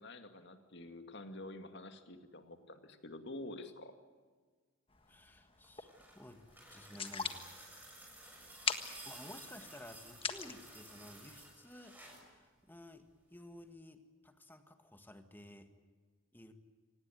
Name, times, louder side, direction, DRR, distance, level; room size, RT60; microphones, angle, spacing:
voice 1, 0.0-3.9, left 2 dB, 55° left, 7 dB, 2.4 m, -48 dB
sound 1, 4.9-11.5, left 6 dB, 25° left, 1.5 m, -44 dB
voice 2, 5.1-6.4 6.7-7.4 9.0-15.7 16.3-16.5, left 1 dB, 10° left, 7 dB, 1.8 m, -54 dB
sound 2, 5.5-12.3 13.6-13.7, right 1 dB, 10° right, 6.5 m, -54 dB
25.5 x 18.5 x 9.3 m, 1.5 s
head